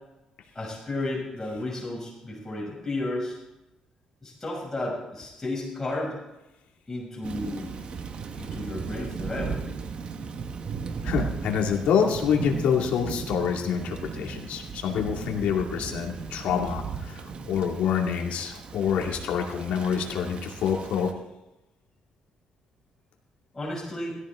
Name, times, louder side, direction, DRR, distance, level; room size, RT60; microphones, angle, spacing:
voice 1, 0.5-3.4 4.2-6.1 6.9-7.8 8.4-9.6 23.5-24.1, left 2 dB, 15° left, -6 dB, 6.4 m, -33 dB
Thunder / Rain, 7.2-21.1, right 5 dB, 55° right, 1.5 m, -36 dB
voice 2, 11.0-17.2 17.5-21.1, left 7 dB, 80° left, 0 dB, 2.4 m, -26 dB
17.5 x 14.0 x 3.8 m, 0.97 s
cardioid pair, 85°, 2 cm